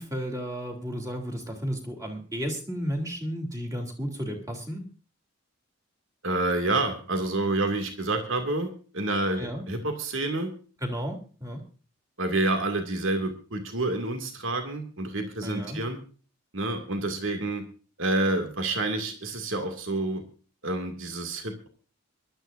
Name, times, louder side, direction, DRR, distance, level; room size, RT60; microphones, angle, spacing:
voice 1, 0.0-4.8 9.4-9.6 10.8-11.6 15.4-15.8, equal, 15° right, 3 dB, 3.1 m, -33 dB
voice 2, 6.2-10.5 12.2-16.0 16.5-17.7 18.0-20.2 20.6-21.7, right 2 dB, 70° right, 5 dB, 2.3 m, -28 dB
23.5 x 12.5 x 2.6 m, 0.38 s
head